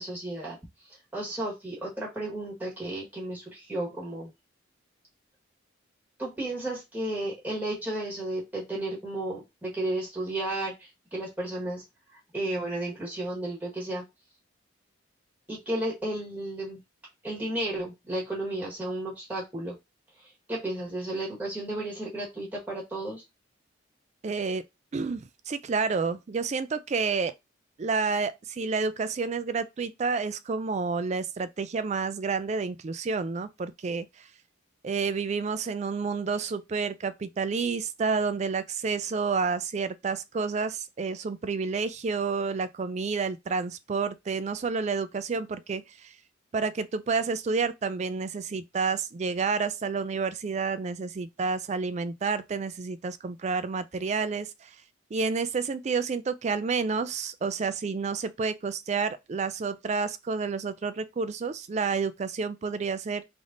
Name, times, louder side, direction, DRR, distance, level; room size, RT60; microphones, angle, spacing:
voice 1, 0.0-4.3 6.2-11.8 12.3-14.0 15.5-16.8 17.2-19.7 20.2-23.2, right 1 dB, 10° right, 1.4 m, -33 dB
voice 2, 24.2-24.6 24.9-27.3 27.8-34.3 34.8-46.2 46.5-54.8 55.1-63.2, right 4 dB, 35° right, 0.3 m, -29 dB
3.4 x 2.6 x 3.7 m
head